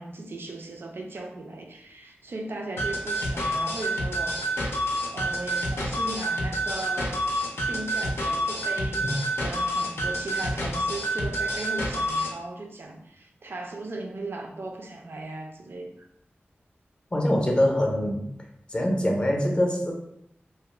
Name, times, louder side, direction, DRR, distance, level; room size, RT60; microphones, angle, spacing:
voice 1, 0.0-4.4 5.1-7.2 7.7-9.0 9.4-15.9, right 2 dB, 65° right, 2 dB, 0.4 m, -37 dB
sound 1, 2.8-12.4, equal, 80° left, 0.5 m, -28 dB
voice 2, 17.1-18.2 18.7-19.9, left 1 dB, 25° left, 0 dB, 0.5 m, -24 dB
2.4 x 2.0 x 3.1 m, 0.75 s
wide cardioid pair, 90°, 4 cm